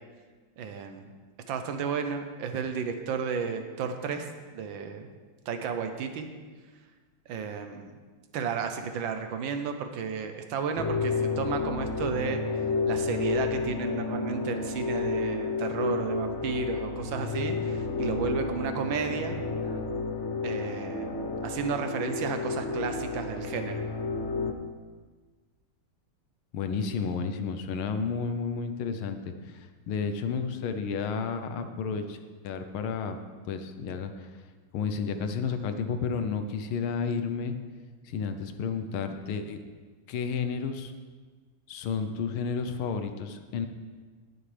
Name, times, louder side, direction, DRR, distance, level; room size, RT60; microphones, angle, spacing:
voice 1, 0.6-1.2 1.5-5.1 5.5-6.3 7.3-7.9 8.3-12.4 12.9-19.4 19.6-19.8 20.4-23.8, right 6 dB, 70° right, 6 dB, 1.5 m, -33 dB
sound 1, 10.8-24.5, left 4 dB, 65° left, 0.7 m, -31 dB
voice 2, 26.5-32.2 32.4-33.2 33.5-34.3 34.7-37.5 38.0-39.6 40.1-40.9 41.7-43.7, left 5 dB, 85° left, 8 dB, 1.7 m, -31 dB
19.0 x 7.3 x 3.3 m, 1.4 s
omnidirectional pair, 2.3 m